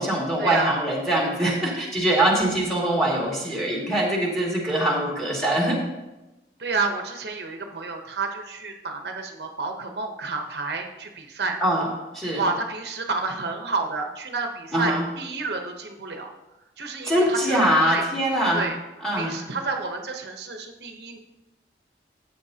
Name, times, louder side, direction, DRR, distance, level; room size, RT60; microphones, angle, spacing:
voice 1, 0.0-5.8 11.6-11.9 12.1-12.4 14.7-15.0 17.0-18.6 19.0-19.4, right 1 dB, ahead, -3 dB, 2.2 m, -23 dB
voice 2, 6.6-11.6 12.3-16.3 16.8-18.0 18.5-18.8 19.2-21.2, right 3 dB, 70° right, 3 dB, 0.9 m, -30 dB
13.0 x 8.2 x 2.8 m, 0.99 s
head